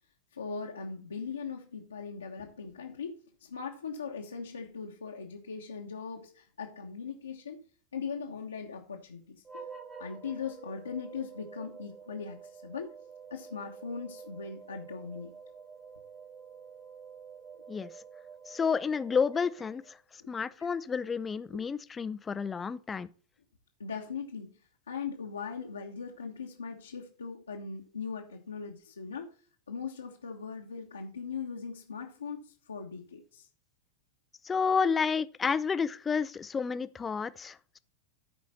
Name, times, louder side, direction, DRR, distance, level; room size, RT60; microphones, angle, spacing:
voice 1, 0.3-7.6 7.9-9.6 10.0-12.9 13.3-15.3 20.2-20.3 21.5-21.8 23.8-24.5 24.9-29.3 29.7-33.5 34.8-35.0, left 5 dB, 75° left, 1.3 m, -40 dB
sound 1, 9.4-20.0, right 6 dB, 20° right, 2.0 m, -49 dB
voice 2, 18.5-19.8 20.3-23.1 34.4-37.8, left 6 dB, 15° left, 0.5 m, -30 dB
13.5 x 5.2 x 4.3 m
figure-of-eight pair, 90°, 0 cm